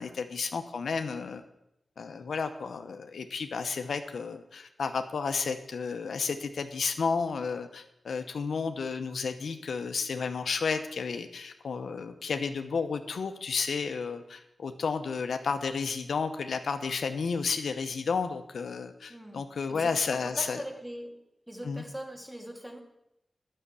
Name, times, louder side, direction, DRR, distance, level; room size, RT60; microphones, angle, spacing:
voice 1, 0.0-1.4 2.0-20.6 21.6-21.8, left 5 dB, 85° left, 7 dB, 0.8 m, -32 dB
voice 2, 19.1-19.4 19.7-21.2 21.5-22.8, equal, 5° right, 3 dB, 2.4 m, -41 dB
10.0 x 6.5 x 8.3 m, 0.84 s
cardioid pair, 60°, 0 cm